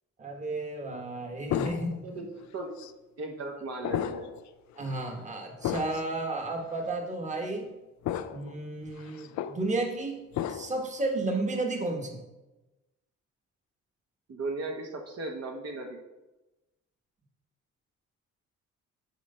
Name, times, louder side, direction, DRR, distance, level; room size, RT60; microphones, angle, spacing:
voice 1, 0.2-2.2 4.8-7.7 8.3-10.2 10.5-12.2, right 2 dB, 25° right, 3 dB, 1.3 m, -32 dB
sound 1, 1.5-2.1 2.8-2.9 3.8-4.4 4.8-5.0 5.6-6.1 6.8-6.9 8.0-8.5 8.9-9.6 10.3-10.8, left 10 dB, 70° left, 0.5 m, -33 dB
voice 2, 2.0-2.9 3.2-4.3 14.3-16.0, right 2 dB, 55° right, 1 dB, 1.2 m, -37 dB
9.3 x 3.3 x 5.5 m, 1.1 s
cardioid pair, 90°, 30 cm